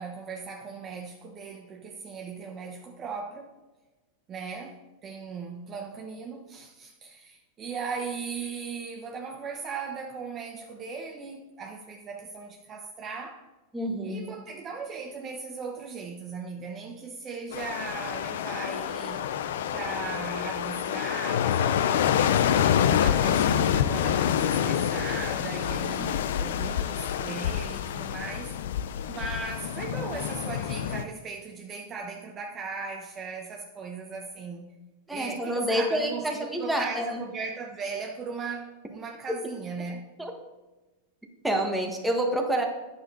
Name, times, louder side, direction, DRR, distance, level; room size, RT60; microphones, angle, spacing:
voice 1, 0.0-3.5 4.3-4.8 5.0-13.4 14.0-19.3 19.7-22.5 22.8-28.5 29.1-34.7 35.1-40.1, right 5 dB, 30° right, 1 dB, 0.9 m, -38 dB
voice 2, 13.7-14.3 26.1-26.3 35.1-37.2 40.2-40.3 41.4-42.6, right 1 dB, 5° right, 2 dB, 1.3 m, -28 dB
sound 1, 17.5-31.0, left 9 dB, 75° left, 0.5 m, -27 dB
8.8 x 7.1 x 3.9 m, 1.1 s
hypercardioid pair, 125°, 0 cm